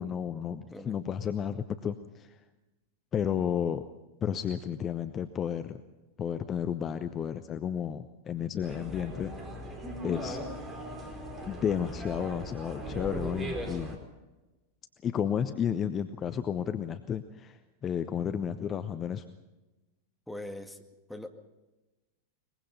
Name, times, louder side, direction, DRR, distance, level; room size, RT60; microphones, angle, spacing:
voice 1, 0.0-2.4 3.1-3.8 4.2-5.8 6.2-9.3 10.0-10.4 11.5-14.0 15.0-19.2, left 8 dB, 25° left, 10 dB, 0.9 m, -32 dB
sound 1, 8.6-14.0, equal, 20° right, 4.7 m, -38 dB
voice 2, 20.3-20.8 21.1-21.3, left 1 dB, ahead, 4 dB, 2.1 m, -41 dB
22.5 x 21.5 x 5.7 m, 1.1 s
figure-of-eight pair, 90°, 0 cm